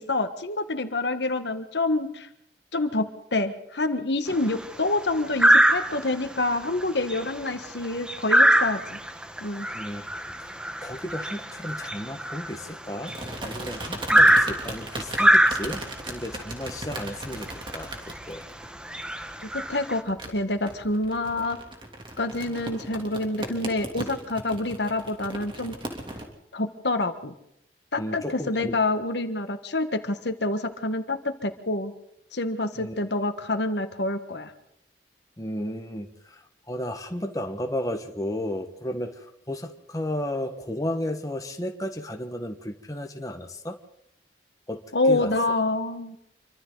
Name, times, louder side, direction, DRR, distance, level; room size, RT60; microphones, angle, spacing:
voice 1, 0.0-2.3 2.7-9.0 9.4-9.7 19.5-21.6 22.2-25.7 26.5-27.3 27.9-31.9 32.3-34.5 44.9-46.1, left 2 dB, 75° left, 8 dB, 1.6 m, -27 dB
sound 1, 4.3-4.6 5.4-6.2 6.6-6.8 7.1-13.4 14.1-16.0 17.0-17.1 17.5-17.6 18.2-18.4 18.8-20.0, right 1 dB, 5° right, 1.2 m, -22 dB
voice 2, 10.5-13.1 13.4-15.8 16.1-17.9 18.2-18.4 21.4-21.5 28.0-28.8 32.8-32.9 35.4-43.8 44.7-45.3, left 1 dB, 20° left, 5 dB, 1.6 m, -33 dB
sound 2, 10.9-11.7 13.1-26.2, right 1 dB, 25° right, 3.1 m, -38 dB
27.0 x 24.5 x 4.1 m, 0.79 s
head